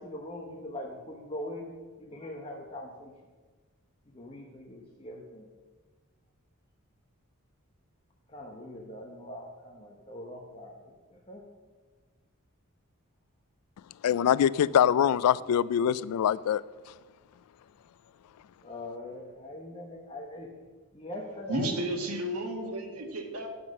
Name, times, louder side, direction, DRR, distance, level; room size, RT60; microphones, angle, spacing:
voice 1, 0.0-1.7 2.0-3.1 4.1-5.4 8.3-11.4 18.6-20.5 20.9-21.8, left 1 dB, 25° left, 1.0 m, -42 dB
voice 2, 14.0-16.6, left 9 dB, 85° left, 0.3 m, -24 dB
voice 3, 21.5-23.5, right 1 dB, 85° right, 1.7 m, -32 dB
9.5 x 5.9 x 6.4 m
head